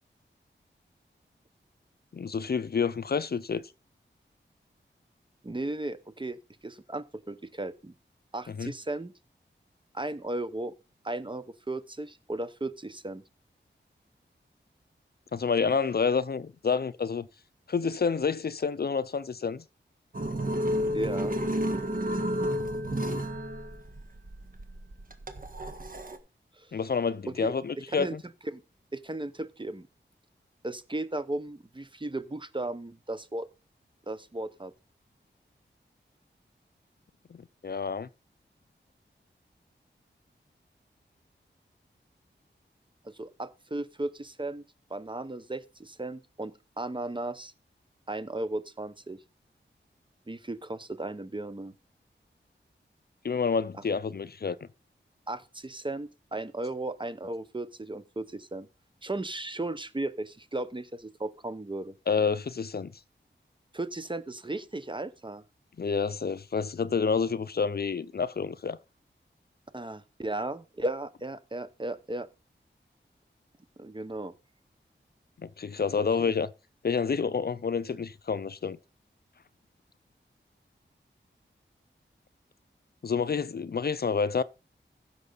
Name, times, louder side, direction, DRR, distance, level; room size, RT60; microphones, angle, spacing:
voice 1, 2.1-3.6 8.5-8.7 15.3-17.3 17.7-19.6 26.7-28.2 37.3-38.1 53.2-54.6 62.1-62.9 65.8-68.8 75.4-76.5 76.8-78.8 83.0-84.4, left 5 dB, 50° left, 0.5 m, -28 dB
voice 2, 5.4-7.9 8.3-9.1 9.9-10.7 11.0-13.2 20.9-21.4 26.6-26.7 27.2-27.5 27.9-28.2 28.5-28.6 28.9-29.9 30.6-33.5 34.1-34.7 43.0-44.6 44.9-47.5 48.1-49.2 50.3-51.7 55.3-58.7 59.0-61.9 63.7-65.4 69.7-72.3 73.8-74.3 76.2-76.3, right 2 dB, 25° right, 0.9 m, -35 dB
sound 1, 20.1-26.2, equal, 45° right, 1.5 m, -31 dB
15.0 x 6.8 x 3.9 m
wide cardioid pair, 90°, 20 cm